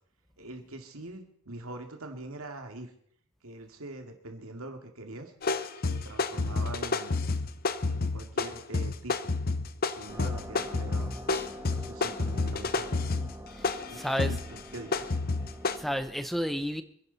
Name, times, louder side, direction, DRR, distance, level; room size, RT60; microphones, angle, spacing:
voice 1, 0.4-2.9 3.4-5.3 5.8-7.2 7.8-9.3 10.0-11.2 11.7-13.0 13.9-15.2, right 2 dB, 80° right, 5 dB, 2.3 m, -43 dB
sound 1, 5.4-15.8, left 3 dB, 45° left, 0.8 m, -30 dB
sound 2, 10.1-16.1, equal, 15° right, 1.3 m, -45 dB
voice 2, 13.6-14.3 15.8-16.8, equal, ahead, 11 dB, 0.8 m, -31 dB
27.5 x 11.0 x 4.1 m, 0.66 s
head